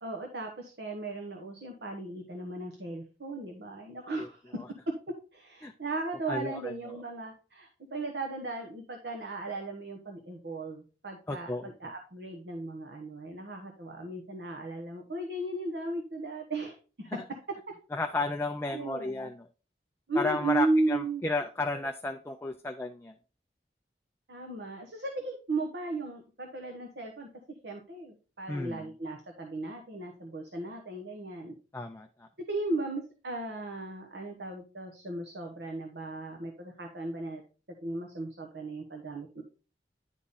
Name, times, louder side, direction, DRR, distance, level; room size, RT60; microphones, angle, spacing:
voice 1, 0.0-4.4 5.1-17.1 18.7-19.3 20.1-21.2 24.3-27.3 27.6-31.5 32.5-37.4 37.8-39.4, right 2 dB, 70° right, 3 dB, 1.1 m, -36 dB
voice 2, 6.3-6.9 11.3-11.7 17.1-17.2 17.9-19.5 20.2-23.2 28.5-28.9 31.7-32.3, left 3 dB, 15° left, 4 dB, 0.4 m, -33 dB
10.0 x 3.6 x 4.0 m, 0.36 s
head